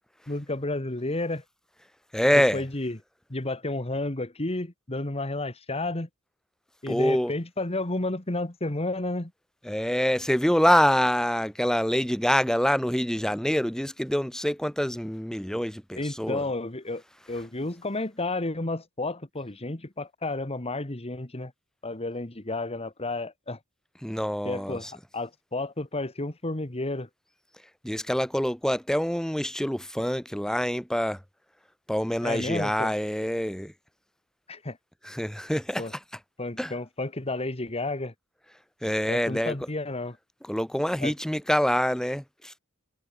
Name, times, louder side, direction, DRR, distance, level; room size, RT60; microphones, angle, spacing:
voice 1, 0.3-1.4 2.3-3.0 3.3-6.1 6.8-9.3 16.0-17.0 17.3-21.5 21.8-23.6 24.4-27.1 32.2-32.9 34.5-34.8 35.8-35.9 36.4-38.1 39.1-40.2 41.0-41.1, left 2 dB, 30° left, 1.8 m, -31 dB
voice 2, 2.1-2.6 6.9-7.3 9.6-16.4 24.0-24.9 27.8-31.2 31.9-33.7 35.0-36.0 36.6-36.7 38.8-39.6 40.4-42.5, equal, 5° left, 1.0 m, -26 dB
head